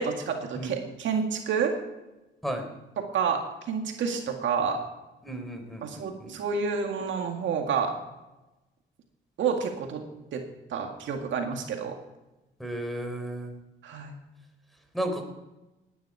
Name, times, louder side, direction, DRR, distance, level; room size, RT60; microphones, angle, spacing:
voice 1, 0.0-1.7 3.0-3.4 3.7-4.8 5.8-7.9 9.4-10.0 10.3-10.4 10.7-12.0 13.8-14.1, right 6 dB, 70° right, 3 dB, 2.0 m, -29 dB
voice 2, 5.2-6.3 12.6-13.6 14.9-15.2, right 1 dB, ahead, 4 dB, 3.7 m, -33 dB
18.5 x 10.5 x 4.8 m, 1.0 s
cardioid pair, 90°, 20 cm